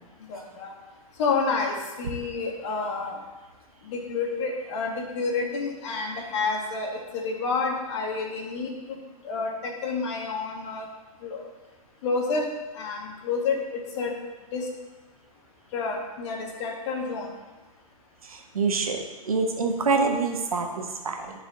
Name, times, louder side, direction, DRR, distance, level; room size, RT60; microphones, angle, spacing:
voice 1, 0.3-0.7 1.2-3.2 3.8-9.0 9.2-10.9 11.2-11.4 12.0-12.5 12.7-14.2 14.5-14.7 15.7-17.3, left 4 dB, 50° left, 1 dB, 2.0 m, -29 dB
voice 2, 18.2-21.3, right 4 dB, 80° right, 3 dB, 1.4 m, -26 dB
12.0 x 5.0 x 3.9 m, 1.2 s
figure-of-eight pair, 105°, 18 cm